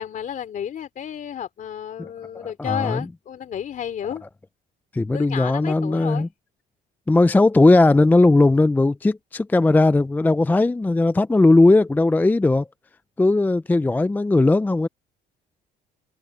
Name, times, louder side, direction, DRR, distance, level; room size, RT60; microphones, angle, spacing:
voice 1, 0.0-4.2 5.1-6.3, left 9 dB, 50° left, 3.3 m, -31 dB
voice 2, 2.3-3.0 4.9-6.3 7.1-12.7 13.2-14.9, left 2 dB, 10° left, 0.5 m, -18 dB
cardioid pair, 110°, 17 cm